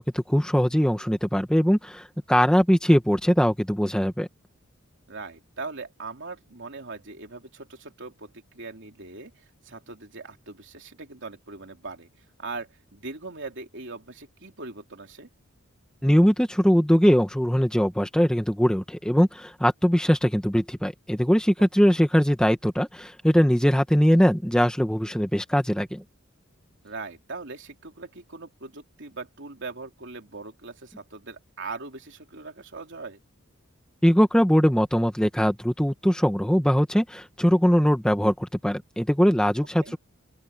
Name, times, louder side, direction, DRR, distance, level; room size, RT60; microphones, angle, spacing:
voice 1, 0.0-4.3 16.0-26.0 34.0-40.0, equal, 5° left, 1.4 m, -21 dB
voice 2, 5.1-12.1 12.4-15.3 26.8-33.2 39.8-39.9, right 3 dB, 60° right, 3.4 m, -40 dB
head